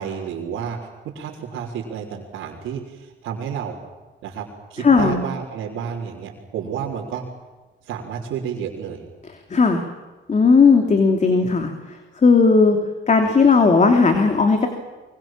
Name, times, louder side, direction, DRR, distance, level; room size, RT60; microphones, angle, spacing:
voice 1, 0.0-3.8 4.2-7.2 7.8-9.0, right 7 dB, 90° right, -6 dB, 4.0 m, -31 dB
voice 2, 4.8-5.2 9.3-9.8 10.3-12.8 13.1-14.7, left 4 dB, 35° left, 5 dB, 2.9 m, -16 dB
24.0 x 23.0 x 7.5 m, 1.3 s
cardioid pair, 90°, 20 cm